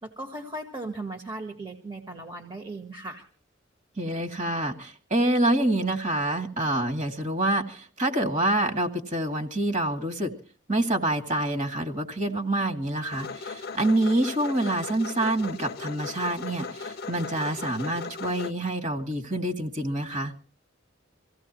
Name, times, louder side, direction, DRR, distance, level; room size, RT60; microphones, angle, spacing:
voice 1, 0.0-3.2, right 2 dB, 25° right, 5 dB, 1.6 m, -37 dB
voice 2, 4.0-10.3 10.7-20.3, right 1 dB, 40° right, 5 dB, 2.4 m, -27 dB
sound 1, 13.1-18.5, left 4 dB, 55° left, 0.7 m, -37 dB
25.0 x 16.0 x 3.1 m, 0.38 s
head